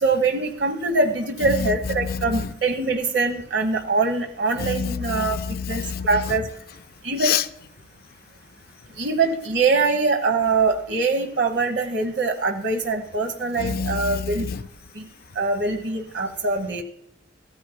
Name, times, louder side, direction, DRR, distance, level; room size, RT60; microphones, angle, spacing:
voice 1, 0.0-5.4 5.7-6.4 7.0-7.3 9.0-14.4 14.9-15.0 15.3-16.8, right 3 dB, 85° right, 1.2 m, -23 dB
voice 2, 4.6-6.1 7.2-7.4 13.6-14.2, left 7 dB, 55° left, 0.4 m, -26 dB
15.0 x 9.4 x 2.2 m
head